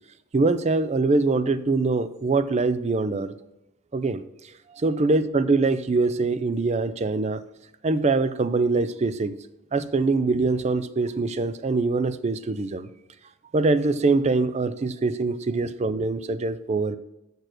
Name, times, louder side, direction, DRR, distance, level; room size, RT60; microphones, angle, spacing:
voice 1, 0.3-3.3 3.9-4.2 4.7-7.4 7.8-9.3 9.7-12.9 13.5-17.0, right 3 dB, 30° right, 14 dB, 0.4 m, -23 dB
6.8 x 6.4 x 6.0 m, 0.89 s
head